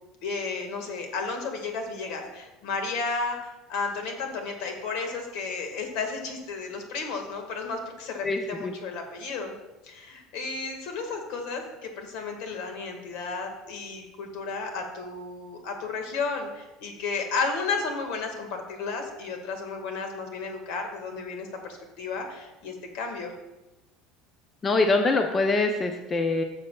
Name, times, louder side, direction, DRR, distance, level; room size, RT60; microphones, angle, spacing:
voice 1, 0.2-9.5 9.8-23.3, left 4 dB, 70° left, 4 dB, 1.6 m, -33 dB
voice 2, 8.2-8.7 24.6-26.4, left 3 dB, 20° left, 5 dB, 0.5 m, -24 dB
12.5 x 6.6 x 2.3 m, 1.0 s
cardioid pair, 145°, 0 cm